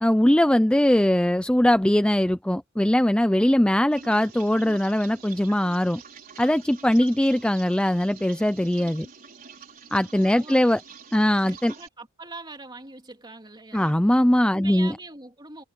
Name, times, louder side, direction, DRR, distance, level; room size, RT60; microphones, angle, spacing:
voice 1, 0.0-6.0 6.4-9.1 9.9-10.8 11.1-11.7 13.7-14.9, left 1 dB, 5° left, 0.5 m, -21 dB
sound 1, 3.9-11.9, right 6 dB, 40° right, 4.4 m, -46 dB
voice 2, 10.2-10.9 11.4-14.0 14.5-15.6, right 3 dB, 20° right, 3.5 m, -42 dB
head